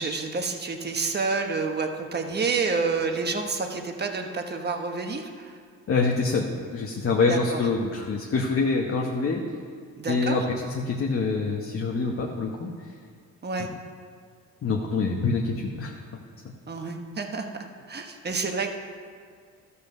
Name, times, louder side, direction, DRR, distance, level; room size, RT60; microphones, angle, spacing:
voice 1, 0.0-5.6 7.3-7.6 10.0-10.4 13.4-13.7 16.7-17.5 17.9-18.7, right 4 dB, 35° right, 4 dB, 1.2 m, -29 dB
voice 2, 5.9-6.5 6.7-9.4 10.0-12.9 14.6-15.9, left 4 dB, 45° left, 0 dB, 1.1 m, -25 dB
13.0 x 5.6 x 6.8 m, 2.1 s
cardioid pair, 90°, 30 cm